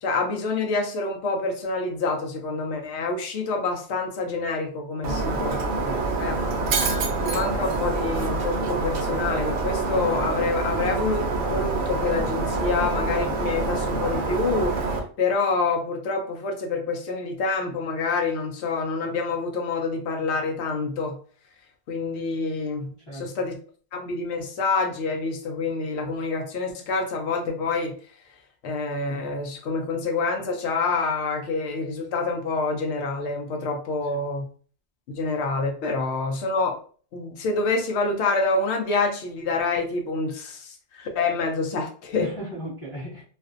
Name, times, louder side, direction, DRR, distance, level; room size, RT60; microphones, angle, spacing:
voice 1, 0.0-5.6 6.2-6.3 7.2-21.2 21.9-23.5 23.9-27.9 28.6-34.5 35.1-36.7 37.1-42.3, left 3 dB, 90° left, 2 dB, 0.9 m, -27 dB
Shatter, 5.0-15.0, right 3 dB, 60° right, 0.6 m, -26 dB
voice 2, 5.6-6.4 23.1-23.5 34.1-34.2 42.2-43.2, equal, 30° left, -7 dB, 0.9 m, -38 dB
2.5 x 2.1 x 2.4 m, 0.43 s
omnidirectional pair, 1.1 m